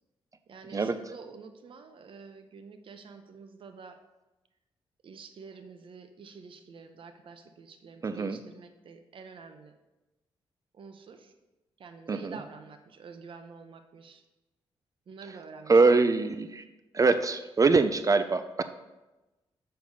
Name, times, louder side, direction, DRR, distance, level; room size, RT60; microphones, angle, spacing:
voice 1, 0.5-4.0 5.0-9.7 10.7-11.3 11.8-14.2 15.1-16.0, right 5 dB, 60° right, 7 dB, 0.9 m, -48 dB
voice 2, 8.0-8.4 12.1-12.4 15.7-16.6 16.9-18.6, right 4 dB, 35° right, 11 dB, 0.5 m, -23 dB
6.8 x 6.5 x 5.4 m, 1.1 s
cardioid pair, 80°, 10 cm